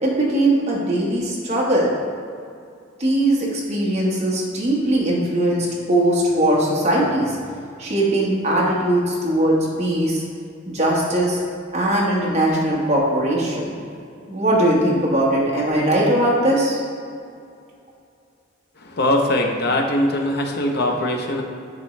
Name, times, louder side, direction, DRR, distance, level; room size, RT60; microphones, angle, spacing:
voice 1, 0.0-1.9 3.0-7.4 7.8-10.2 10.7-11.4 11.7-13.7 14.3-16.8, right 1 dB, 35° right, -4 dB, 1.4 m, -20 dB
voice 2, 19.0-21.4, left 1 dB, 55° left, 2 dB, 0.7 m, -21 dB
10.5 x 3.7 x 3.2 m, 2.4 s
head